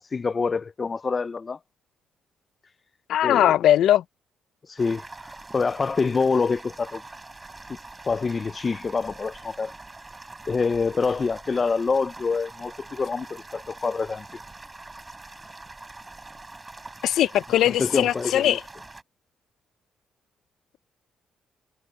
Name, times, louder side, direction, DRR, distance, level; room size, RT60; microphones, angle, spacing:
voice 1, 0.1-1.6 3.2-3.5 4.7-5.0 5.5-7.0 8.0-9.7 10.5-14.2 17.6-18.6, left 4 dB, 25° left, 0.3 m, -26 dB
voice 2, 3.1-4.0 17.0-18.6, left 12 dB, 75° left, 0.6 m, -20 dB
sound 1, 4.8-19.0, right 2 dB, 15° right, 6.0 m, -44 dB
cardioid pair, 165°, 0 cm